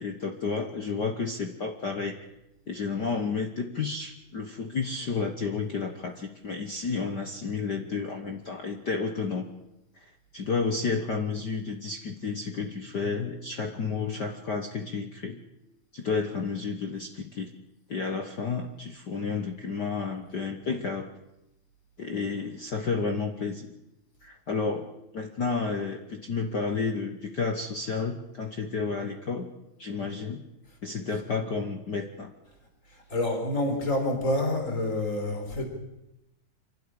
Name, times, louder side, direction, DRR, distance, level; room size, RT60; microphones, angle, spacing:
voice 1, 0.0-2.2 2.7-9.5 9.9-10.0 10.3-15.4 15.9-17.5 17.9-21.1 22.0-23.7 24.2-24.8 25.1-29.5 29.8-30.4 30.8-32.3, left 4 dB, 65° left, 4 dB, 1.0 m, -31 dB
voice 2, 33.1-35.7, left 1 dB, 20° left, 3 dB, 4.4 m, -27 dB
26.5 x 12.0 x 10.0 m, 0.92 s
omnidirectional pair, 3.8 m